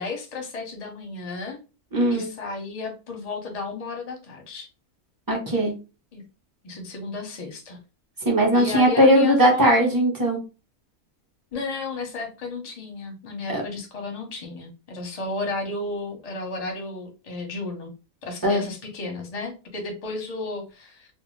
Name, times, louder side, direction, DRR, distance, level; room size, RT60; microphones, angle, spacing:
voice 1, 0.0-1.6 2.1-4.7 6.1-6.2 6.6-7.8 8.5-9.7 11.5-17.9 18.2-21.1, left 3 dB, 35° left, 3 dB, 0.6 m, -33 dB
voice 2, 1.9-2.3 5.3-5.7 8.2-10.4 13.5-13.6 18.4-18.6, equal, 20° right, -1 dB, 0.7 m, -19 dB
2.6 x 2.3 x 3.1 m, 0.30 s
omnidirectional pair, 1.5 m